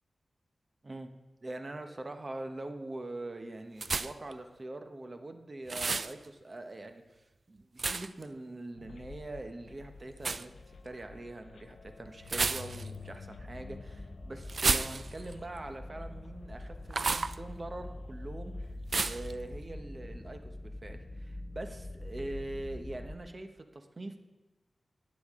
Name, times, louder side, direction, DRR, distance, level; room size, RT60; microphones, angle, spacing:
voice 1, 1.4-18.7 19.0-24.2, right 2 dB, 30° right, 6 dB, 0.9 m, -43 dB
sound 1, 3.8-4.3 5.7-6.1 7.8-8.2 10.2-10.5 12.3-13.0 14.5-15.3 16.9-17.4 18.9-19.3, right 4 dB, 45° right, 0.3 m, -31 dB
sound 2, 8.8-18.7, left 5 dB, 70° left, 0.6 m, -51 dB
sound 3, 13.4-23.2, left 1 dB, 20° left, 0.6 m, -44 dB
15.0 x 9.8 x 3.7 m, 1.1 s
wide cardioid pair, 150°, 0 cm